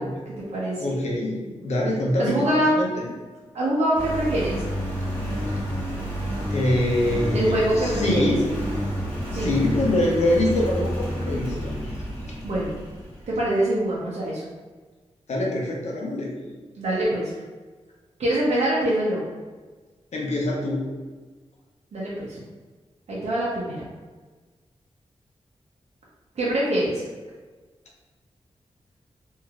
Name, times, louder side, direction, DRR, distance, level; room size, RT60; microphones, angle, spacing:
voice 1, 0.0-1.0 2.2-2.8 3.5-4.6 7.3-8.3 9.3-9.5 12.4-12.8 13.3-14.4 16.8-17.3 18.2-19.2 21.9-22.4 23.1-23.8 26.4-27.0, right 1 dB, 75° right, -7 dB, 0.7 m, -24 dB
voice 2, 0.8-3.1 6.5-8.4 9.3-12.0 15.3-16.3 20.1-20.9, left 1 dB, 80° left, -2 dB, 0.7 m, -24 dB
Engine, 3.9-13.4, equal, 20° left, 1.2 m, -29 dB
3.2 x 2.6 x 2.4 m, 1.4 s
wide cardioid pair, 110°, 11 cm